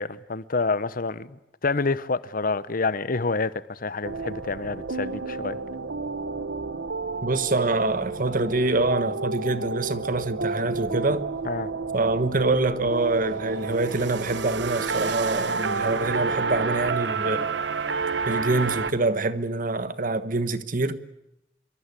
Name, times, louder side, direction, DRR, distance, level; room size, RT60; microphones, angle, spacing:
voice 1, 0.0-1.4 1.6-5.6 11.5-11.7, left 3 dB, 50° left, 1.0 m, -27 dB
sound 1, 4.0-18.9, right 4 dB, 80° right, 1.2 m, -30 dB
voice 2, 7.2-11.3 11.9-17.5 18.2-21.0, right 2 dB, 50° right, 1.4 m, -25 dB
27.0 x 23.5 x 8.4 m
head